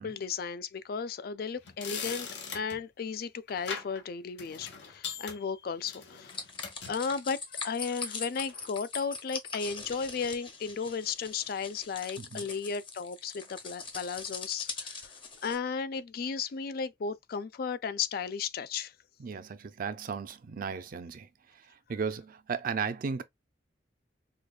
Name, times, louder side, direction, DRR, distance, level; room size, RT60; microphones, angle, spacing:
voice 1, 0.0-2.3 2.5-6.4 6.9-15.1 15.4-18.9, left 5 dB, 55° left, 0.4 m, -35 dB
sound 1, 1.6-2.8 3.5-4.0 4.4-7.0 7.9-8.1 8.5-8.7, left 6 dB, 85° left, 1.0 m, -41 dB
sound 2, 6.3-15.6, left 5 dB, 30° left, 0.8 m, -41 dB
voice 2, 12.2-12.5 19.2-21.3 21.9-23.2, right 5 dB, 50° right, 0.4 m, -35 dB
5.0 x 2.3 x 2.3 m
head